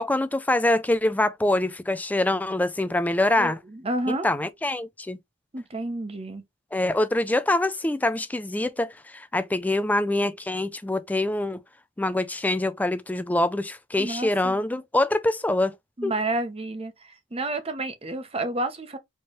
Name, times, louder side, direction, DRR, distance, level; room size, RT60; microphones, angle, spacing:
voice 1, 0.0-3.6 4.1-5.2 6.7-11.6 12.0-15.7 16.0-16.1, left 1 dB, 10° left, 0.3 m, -25 dB
voice 2, 3.4-4.3 5.5-6.4 14.0-14.6 16.0-19.0, right 2 dB, 30° right, 0.8 m, -30 dB
4.4 x 3.1 x 3.0 m
head